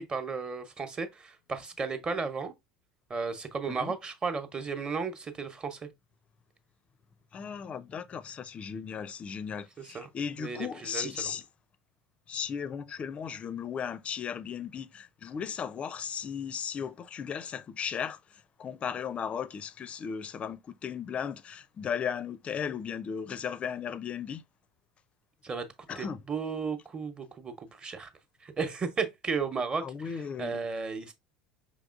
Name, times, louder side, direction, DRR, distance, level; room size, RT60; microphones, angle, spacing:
voice 1, 0.0-2.5 3.1-5.9 9.8-10.1 10.4-11.3 25.4-25.7 26.0-28.1 28.4-31.1, right 5 dB, 25° right, 0.9 m, -34 dB
voice 2, 7.3-11.4 12.3-24.4 25.9-26.2 29.8-30.6, left 7 dB, 30° left, 0.4 m, -36 dB
5.4 x 3.4 x 2.5 m
figure-of-eight pair, 70°, 4 cm